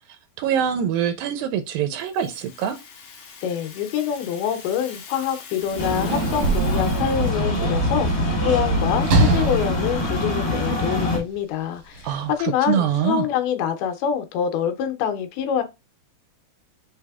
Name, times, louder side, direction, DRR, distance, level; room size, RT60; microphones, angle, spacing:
voice 1, 0.4-2.8 12.0-13.3, right 8 dB, 80° right, 2.2 m, -24 dB
Rattle (instrument), 1.9-7.9, left 6 dB, 60° left, 2.4 m, -43 dB
voice 2, 3.4-15.6, left 8 dB, 85° left, 2.7 m, -25 dB
Sliding door / Slam, 5.6-11.0 11.9-12.1, right 2 dB, 65° right, 1.6 m, -24 dB
sound 1, 5.8-11.2, left 1 dB, 30° left, 2.5 m, -25 dB
6.5 x 3.4 x 2.3 m
omnidirectional pair, 4.4 m